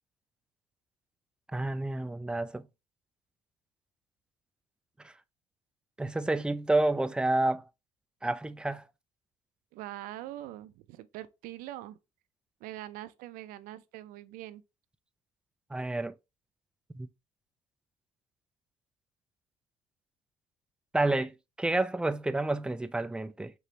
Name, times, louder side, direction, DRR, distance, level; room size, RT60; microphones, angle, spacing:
voice 1, 1.5-2.7 5.0-5.1 6.0-7.7 8.2-8.8 15.7-16.2 16.9-17.1 20.9-23.5, right 2 dB, 5° right, 0.3 m, -29 dB
voice 2, 9.7-12.0 12.6-14.6, right 14 dB, 80° right, 0.5 m, -43 dB
4.8 x 3.0 x 2.8 m
cardioid pair, 115°, 14 cm